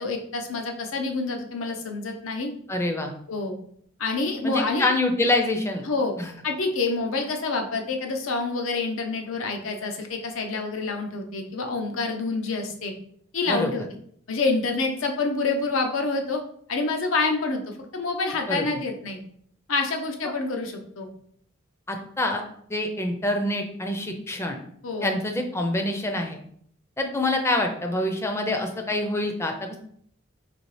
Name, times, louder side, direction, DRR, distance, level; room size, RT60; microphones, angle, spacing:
voice 1, 0.0-2.5 3.3-3.6 4.0-4.9 5.8-6.1 6.4-12.9 13.3-13.8 14.3-16.4 16.7-19.2 19.7-21.1 24.8-25.2, left 3 dB, 90° left, 3 dB, 0.6 m, -27 dB
voice 2, 2.7-3.1 4.4-5.8 6.2-6.3 13.5-13.7 18.5-18.6 21.9-22.4 22.7-24.6 25.0-26.4 27.0-29.5, left 1 dB, 15° left, 4 dB, 0.4 m, -26 dB
4.1 x 2.8 x 3.2 m, 0.64 s
head